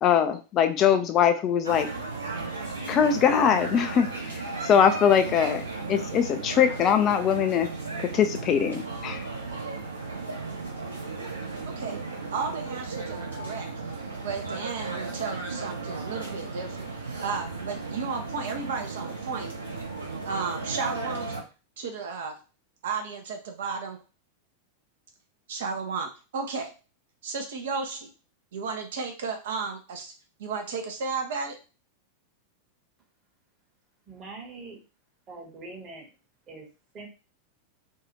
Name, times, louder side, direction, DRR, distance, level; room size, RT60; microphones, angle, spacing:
voice 1, 0.0-1.9 2.9-7.7 8.1-9.3, left 8 dB, 30° left, 8 dB, 0.3 m, -22 dB
sound 1, 1.6-21.4, right 3 dB, 75° right, 0.8 m, -35 dB
voice 2, 11.7-12.0 12.3-13.7 14.2-19.5 20.2-21.3 21.8-22.4 22.8-24.0 25.5-26.7 27.2-28.1 28.5-30.1 30.4-31.6, right 5 dB, 60° right, 4 dB, 0.5 m, -33 dB
voice 3, 34.1-34.8 35.3-36.1 36.5-36.7 36.9-37.1, right 3 dB, 30° right, 0 dB, 1.0 m, -42 dB
2.7 x 2.3 x 2.9 m, 0.31 s
figure-of-eight pair, 90°, 0 cm